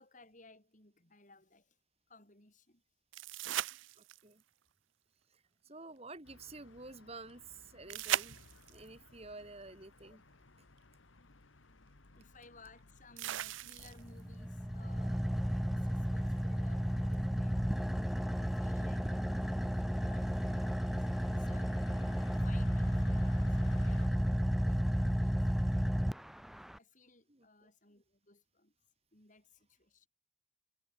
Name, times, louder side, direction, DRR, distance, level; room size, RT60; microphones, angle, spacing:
voice 1, 0.0-1.8 2.1-2.8 12.1-21.1 21.4-22.1 22.4-26.1 26.8-28.7 29.1-30.1, left 2 dB, 40° left, 7.6 m, -60 dB
sound 1, 3.1-4.4 7.9-8.9 10.8-10.9 13.2-14.2 17.1-17.2, right 12 dB, 80° right, 0.5 m, -38 dB
voice 2, 4.0-4.4 5.3-8.4 8.7-10.2 27.3-27.7, right 3 dB, 30° right, 2.9 m, -51 dB
sound 2, 6.2-24.1, left 2 dB, 85° left, 1.7 m, -58 dB
Car / Idling, 13.8-26.8, equal, ahead, 0.8 m, -33 dB
head